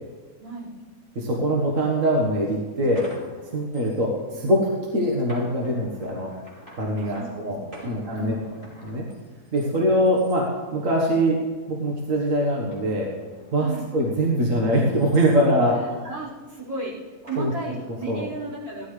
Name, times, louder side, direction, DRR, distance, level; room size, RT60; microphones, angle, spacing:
voice 1, 0.4-0.7 7.1-8.5 13.6-13.9 15.8-18.9, right 2 dB, 70° right, -7 dB, 5.3 m, -35 dB
voice 2, 1.2-3.1 3.5-6.3 6.8-7.6 7.8-8.3 8.8-9.1 9.5-11.4 11.7-13.1 13.5-16.0 17.4-17.5 18.1-18.2, equal, 55° right, -2 dB, 1.7 m, -23 dB
sound 1, 2.5-4.1 4.4-4.7 5.2-7.2 7.7-9.7 10.0-10.4 10.9-11.3 12.0-15.5 17.3-18.1, equal, 15° right, 5.1 m, -48 dB
17.0 x 13.0 x 3.3 m, 1.3 s
omnidirectional pair, 1.7 m